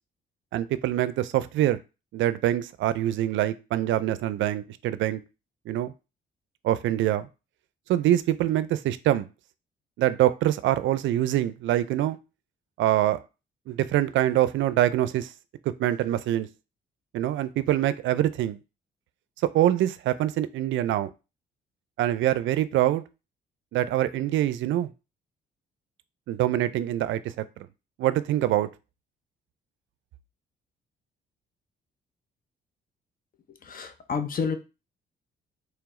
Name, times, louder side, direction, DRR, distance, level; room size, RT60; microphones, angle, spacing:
voice 1, 0.5-1.8 2.1-5.2 5.7-5.9 6.6-7.3 7.9-9.3 10.0-12.2 12.8-13.2 13.7-15.3 15.8-16.5 17.1-18.6 19.4-21.1 22.0-23.0 23.7-24.9 26.3-27.5 28.0-28.7, right 13 dB, 75° right, 0.4 m, -24 dB
voice 2, 33.5-34.6, left 5 dB, 45° left, 0.7 m, -30 dB
3.3 x 3.0 x 3.6 m
cardioid pair, 90°, 20 cm